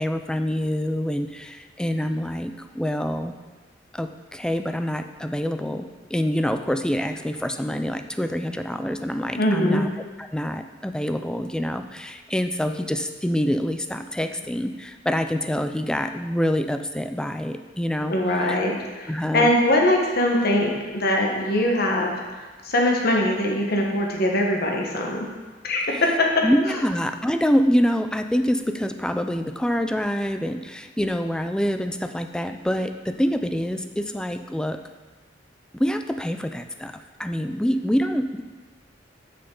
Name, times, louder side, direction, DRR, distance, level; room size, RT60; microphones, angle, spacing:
voice 1, 0.0-3.3 3.9-9.9 10.2-18.1 18.5-18.6 19.1-19.5 25.9-26.0 26.4-34.8 35.7-38.4, equal, 5° left, 8 dB, 0.3 m, -26 dB
voice 2, 9.4-9.8 18.1-22.1 22.6-25.3 25.6-26.5, left 1 dB, 55° left, 0 dB, 1.3 m, -22 dB
8.1 x 6.5 x 3.9 m, 1.3 s
head